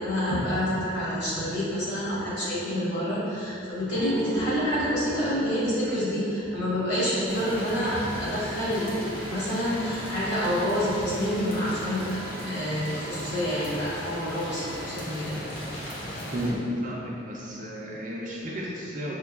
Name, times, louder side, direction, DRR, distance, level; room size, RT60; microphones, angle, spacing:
voice 1, 0.0-15.4, equal, 70° left, -11 dB, 1.4 m, -28 dB
sound 1, 3.9-11.9, right 1 dB, 75° right, 0.8 m, -39 dB
sound 2, 7.3-16.5, equal, 50° left, 0.8 m, -37 dB
Wind instrument woodwind instrument, 8.8-15.0, right 5 dB, 10° left, 0.6 m, -47 dB
voice 2, 16.3-19.2, equal, 40° right, -4 dB, 0.5 m, -32 dB
5.5 x 2.2 x 2.3 m, 2.8 s
head